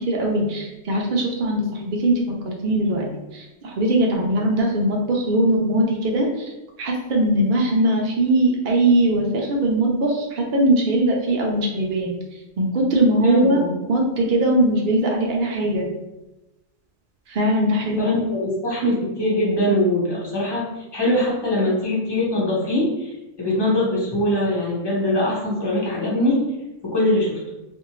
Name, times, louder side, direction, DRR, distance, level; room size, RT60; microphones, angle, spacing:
voice 1, 0.0-6.5 6.8-12.1 12.6-13.6 13.9-15.9 17.3-18.1, right 1 dB, 70° right, 0 dB, 0.4 m, -20 dB
voice 2, 13.2-13.7 18.0-26.4 26.8-27.4, left 1 dB, 25° left, -5 dB, 0.7 m, -22 dB
2.6 x 2.5 x 3.0 m, 1.0 s
omnidirectional pair, 1.4 m